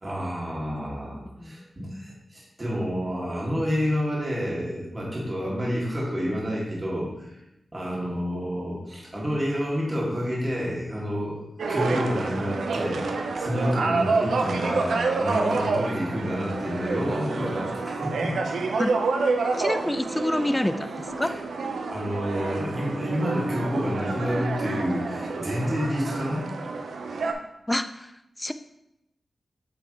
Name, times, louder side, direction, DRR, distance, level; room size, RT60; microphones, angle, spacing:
voice 1, 0.0-7.3 7.7-11.4 11.7-18.4 21.2-21.3 21.9-26.5, equal, 30° right, -5 dB, 2.2 m, -29 dB
sound 1, 11.6-27.3, right 3 dB, 85° right, 0.5 m, -28 dB
voice 2, 19.6-21.3 27.7-28.5, left 1 dB, 15° left, 10 dB, 0.3 m, -28 dB
7.9 x 3.9 x 3.2 m, 0.86 s
cardioid pair, 50°, 0 cm